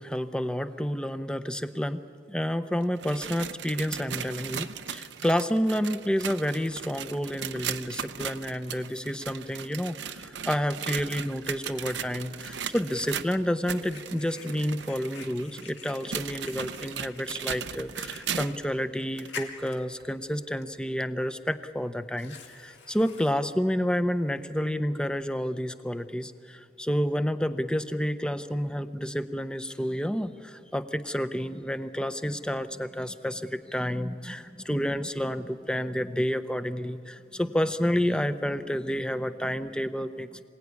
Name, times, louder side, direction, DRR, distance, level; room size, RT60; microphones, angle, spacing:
voice 1, 0.0-40.4, equal, 5° left, 10 dB, 0.7 m, -30 dB
sound 1, 2.8-18.7 19.2-19.3 20.0-20.1 21.0-21.1, right 8 dB, 90° right, 0.8 m, -37 dB
Fire, 9.8-24.7, left 5 dB, 90° left, 2.2 m, -49 dB
26.0 x 17.5 x 9.6 m, 2.4 s
head